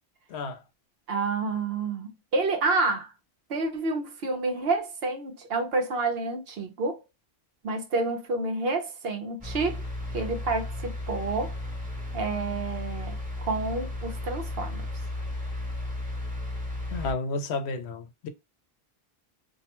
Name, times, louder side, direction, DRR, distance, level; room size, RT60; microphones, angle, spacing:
voice 1, 1.1-3.1 3.5-7.0 7.6-9.8 10.1-11.5 12.1-14.8, right 3 dB, 70° right, 0.9 m, -29 dB
sound 1, 9.4-17.1, left 1 dB, 10° right, 0.7 m, -34 dB
voice 2, 16.9-18.3, left 3 dB, 90° left, 0.9 m, -31 dB
2.6 x 2.1 x 2.8 m
omnidirectional pair, 1.1 m